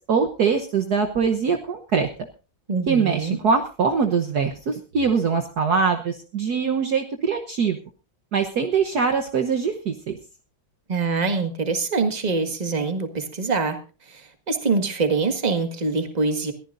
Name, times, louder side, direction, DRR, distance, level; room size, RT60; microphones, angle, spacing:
voice 1, 0.1-2.1 2.9-7.8 8.3-10.2, right 5 dB, 55° right, 5 dB, 1.5 m, -22 dB
voice 2, 2.7-3.4 10.9-13.8 14.1-16.5, right 4 dB, 20° right, 6 dB, 1.7 m, -24 dB
22.0 x 14.5 x 2.6 m, 0.33 s
omnidirectional pair, 2.3 m